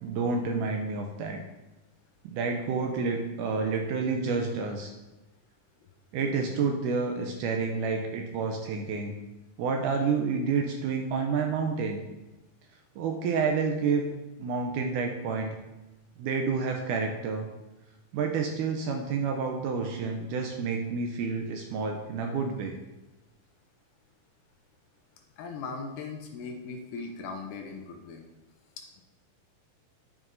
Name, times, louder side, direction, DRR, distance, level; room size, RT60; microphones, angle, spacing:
voice 1, 0.0-1.4 2.2-4.9 6.1-9.1 9.6-12.0 13.0-14.1 14.4-15.6 16.2-17.5 18.1-22.8, right 5 dB, 80° right, 3 dB, 1.9 m, -29 dB
voice 2, 25.4-28.2 28.8-29.0, left 4 dB, 80° left, 4 dB, 2.0 m, -39 dB
11.0 x 4.8 x 2.6 m, 1.0 s
omnidirectional pair, 4.0 m